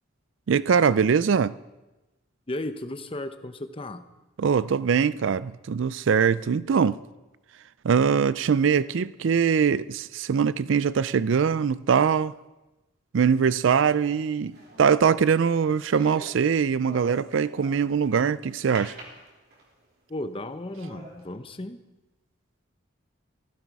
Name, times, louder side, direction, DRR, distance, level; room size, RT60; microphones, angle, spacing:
voice 1, 0.5-1.6 4.4-7.0 7.8-12.3 13.1-19.0, right 6 dB, 70° right, 0.4 m, -22 dB
voice 2, 2.5-4.0 20.1-21.8, left 1 dB, 25° left, 0.8 m, -34 dB
sound 1, 13.7-18.1 18.7-19.8 20.3-20.4 20.8-21.2, right 1 dB, 50° right, 3.3 m, -46 dB
16.0 x 15.0 x 4.7 m
head